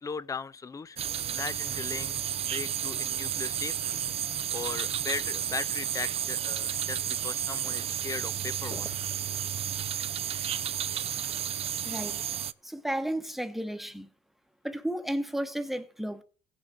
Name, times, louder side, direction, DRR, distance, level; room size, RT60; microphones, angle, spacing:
voice 1, 0.0-2.1 2.4-4.0 4.5-9.0, left 5 dB, 25° left, 0.4 m, -38 dB
sound 1, 1.0-12.5, right 10 dB, 45° right, 0.5 m, -32 dB
voice 2, 11.8-12.2 12.6-14.1 14.6-16.2, right 1 dB, ahead, 1.1 m, -33 dB
17.0 x 6.3 x 3.8 m
cardioid pair, 100°, 15 cm